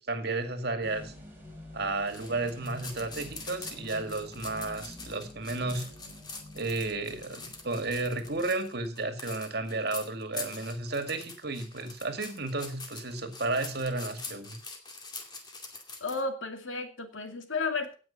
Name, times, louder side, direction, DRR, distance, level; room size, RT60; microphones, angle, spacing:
voice 1, 0.1-1.1 1.7-5.9 6.5-14.6, right 2 dB, 55° right, 7 dB, 2.1 m, -33 dB
sound 1, 0.8-8.7, left 1 dB, 10° right, 4.3 m, -49 dB
sound 2, 2.1-16.2, left 3 dB, 20° left, 2.3 m, -44 dB
voice 2, 16.0-17.9, left 3 dB, 90° left, 6 dB, 2.4 m, -33 dB
17.5 x 6.5 x 5.8 m, 0.35 s
head